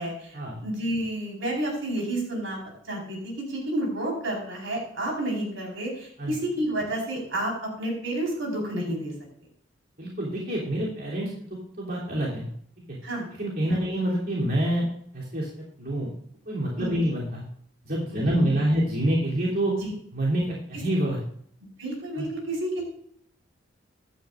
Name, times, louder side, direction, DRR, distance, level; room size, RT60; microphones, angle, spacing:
voice 1, 0.0-2.6 2.9-9.1 13.0-13.3 13.7-13.8 16.8-17.0 18.1-18.8 19.8-19.9 21.8-22.8, right 1 dB, 80° right, -2 dB, 4.6 m, -30 dB
voice 2, 10.0-11.3 11.8-12.5 13.3-14.9 15.1-15.5 15.8-16.1 16.5-17.4 17.8-19.7 20.1-21.2 22.2-22.3, right 1 dB, 50° right, -6 dB, 3.2 m, -26 dB
15.0 x 12.0 x 2.5 m, 0.64 s
head